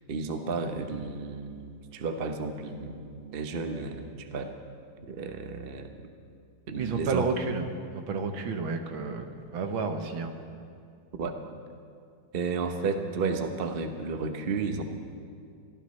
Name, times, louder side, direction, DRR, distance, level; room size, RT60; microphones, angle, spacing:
voice 1, 0.1-4.6 5.1-5.9 6.7-7.3 11.2-11.5 12.3-14.8, right 4 dB, 50° right, 6 dB, 0.7 m, -32 dB
voice 2, 6.8-7.7 7.9-9.2 9.5-10.3, right 4 dB, 70° right, 6 dB, 1.8 m, -31 dB
23.0 x 16.0 x 3.2 m, 2.4 s
omnidirectional pair, 2.3 m